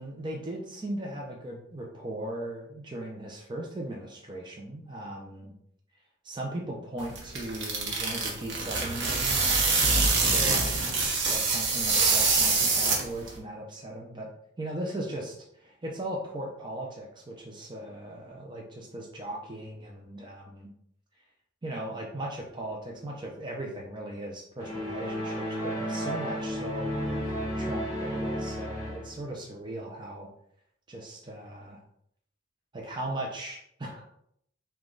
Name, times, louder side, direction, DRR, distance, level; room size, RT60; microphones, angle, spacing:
voice 1, 0.0-5.5 6.2-10.6 11.2-14.3 14.6-20.7 21.6-30.3 30.9-31.8 32.7-34.0, right 1 dB, 25° right, -1 dB, 0.6 m, -38 dB
sound 1, 7.0-13.4, right 3 dB, 60° right, 1.0 m, -25 dB
sound 2, 24.6-29.2, equal, 15° left, 1.1 m, -32 dB
5.0 x 2.4 x 3.8 m, 0.70 s
head